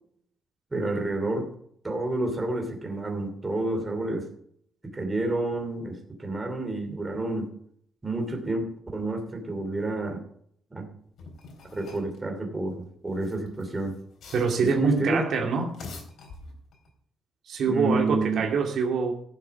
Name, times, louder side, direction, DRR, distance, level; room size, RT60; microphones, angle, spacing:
voice 1, 0.7-1.5 1.8-4.3 4.9-7.5 8.0-8.6 8.9-10.2 10.7-10.9 11.8-13.9 14.6-15.2 17.7-18.5, right 2 dB, 15° right, 2 dB, 2.7 m, -29 dB
sound 1, 11.2-12.2 13.1-14.9 15.6-16.9, left 3 dB, 70° left, 3.7 m, -45 dB
voice 2, 14.3-15.8 17.5-19.1, right 4 dB, 60° right, 1 dB, 2.3 m, -25 dB
15.0 x 7.3 x 5.8 m, 0.66 s
cardioid pair, 145°, 0 cm